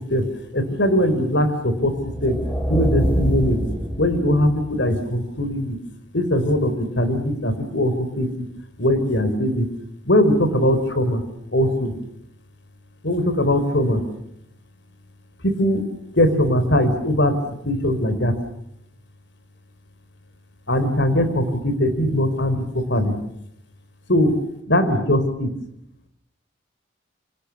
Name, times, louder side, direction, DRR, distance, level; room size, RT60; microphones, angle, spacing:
voice 1, 0.5-1.9 2.2-2.4 2.7-3.6 4.0-5.8 6.1-8.5 8.8-9.7 10.0-11.2 11.5-11.9 13.0-14.0 15.4-15.8 16.1-17.4 17.6-18.3 20.7-23.1 24.1-24.3 24.7-25.5, left 1 dB, 60° left, 10 dB, 3.9 m, -20 dB
sound 1, 1.9-4.9, equal, 10° left, 5.6 m, -25 dB
29.0 x 27.0 x 7.1 m, 0.76 s
head